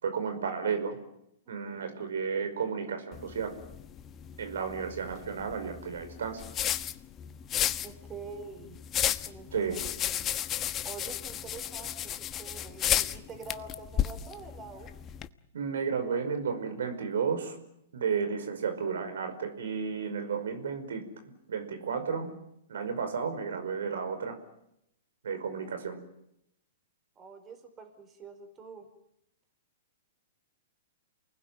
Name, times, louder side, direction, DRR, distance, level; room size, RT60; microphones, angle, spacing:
voice 1, 0.0-1.0 1.5-3.5 4.4-6.4 9.5-9.8 15.5-17.6 17.9-22.3 22.7-24.4 25.2-26.0, right 6 dB, 80° right, 8 dB, 5.4 m, -33 dB
voice 2, 1.5-2.1 7.8-8.8 9.2-10.2 10.8-12.0 12.3-14.9 27.1-28.9, right 4 dB, 25° right, 7 dB, 5.1 m, -46 dB
sound 1, 3.1-15.3, left 10 dB, 25° left, 1.2 m, -34 dB
28.5 x 20.0 x 9.3 m, 0.80 s
hypercardioid pair, 125°, 0 cm